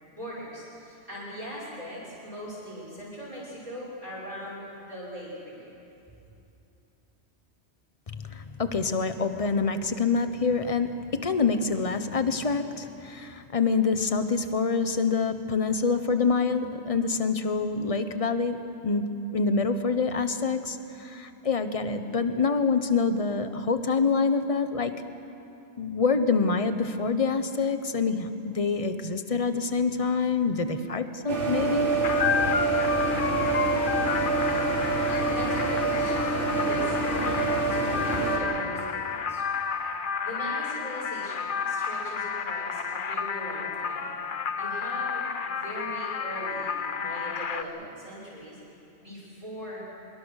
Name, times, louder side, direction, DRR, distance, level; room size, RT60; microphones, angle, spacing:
voice 1, 0.1-5.6 35.0-39.4 40.2-44.1 44.6-48.6 49.0-49.9, equal, 30° right, -8 dB, 5.8 m, -40 dB
voice 2, 8.1-25.0 25.8-31.9, left 4 dB, 30° left, 9 dB, 1.1 m, -26 dB
sound 1, 31.3-38.4, right 3 dB, 80° right, 3.6 m, -26 dB
sound 2, 32.0-47.6, left 6 dB, 50° left, 1.0 m, -31 dB
25.0 x 23.0 x 6.5 m, 2.7 s
omnidirectional pair, 1.2 m